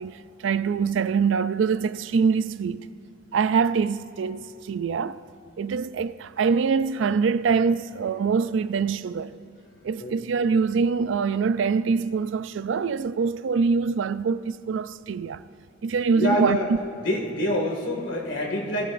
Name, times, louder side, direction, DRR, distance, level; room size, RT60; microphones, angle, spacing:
voice 1, 0.0-2.9 3.3-5.2 5.6-9.4 9.8-15.4 15.8-16.6, right 5 dB, 75° right, 0.4 m, -24 dB
voice 2, 9.6-10.1 16.1-16.7 17.0-18.9, left 1 dB, 75° left, 2.1 m, -26 dB
19.5 x 14.5 x 2.6 m
head